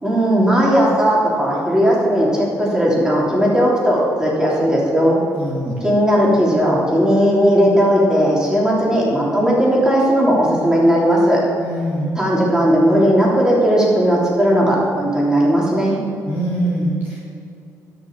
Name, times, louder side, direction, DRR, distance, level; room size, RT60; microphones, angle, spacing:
voice 1, 0.0-5.2 5.8-11.4 12.1-16.0, equal, 10° right, -4 dB, 3.2 m, -16 dB
voice 2, 5.3-5.9 11.6-12.2 16.2-17.2, right 1 dB, 25° right, -7 dB, 2.5 m, -23 dB
13.5 x 6.5 x 7.0 m, 2.5 s
cardioid pair, 130°, 6 cm